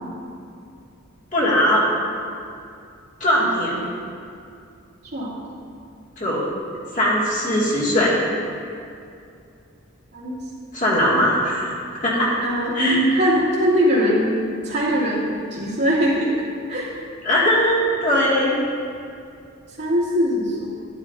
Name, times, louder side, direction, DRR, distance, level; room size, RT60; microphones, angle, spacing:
voice 1, 1.3-1.9 3.2-3.9 6.2-6.4 6.9-8.2 10.7-12.4 12.7-13.0 17.2-18.6, equal, 40° left, -7 dB, 2.2 m, -20 dB
voice 2, 5.0-5.5 10.1-10.4 12.1-14.4 14.6-16.4 16.7-16.9 19.8-20.7, equal, 55° right, -8 dB, 2.4 m, -21 dB
11.0 x 11.0 x 2.7 m, 2.5 s
head